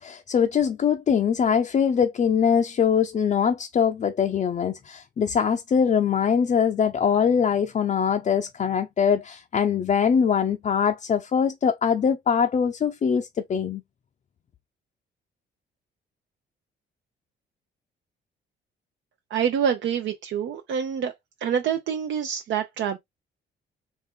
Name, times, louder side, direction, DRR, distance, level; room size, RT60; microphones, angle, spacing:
voice 1, 0.0-13.8, left 7 dB, 35° left, 0.4 m, -22 dB
voice 2, 19.3-21.1 21.4-23.0, right 8 dB, 70° right, 0.6 m, -26 dB
3.6 x 2.4 x 3.6 m
cardioid pair, 90°, 20 cm